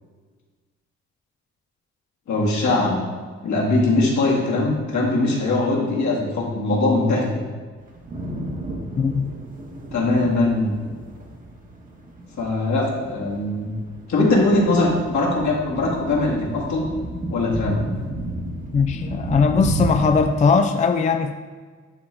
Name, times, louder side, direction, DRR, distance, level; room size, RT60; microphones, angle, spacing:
voice 1, 2.3-3.0 3.4-7.3 9.9-10.8 12.4-13.7 14.1-16.9 17.3-17.8, left 2 dB, 70° left, -3 dB, 2.0 m, -21 dB
sound 1, 7.8-20.3, right 2 dB, 25° right, 1.1 m, -32 dB
voice 2, 9.0-9.3 18.7-21.3, left 5 dB, 25° left, 7 dB, 0.4 m, -19 dB
10.5 x 3.8 x 3.4 m, 1.5 s
cardioid pair, 90°, 30 cm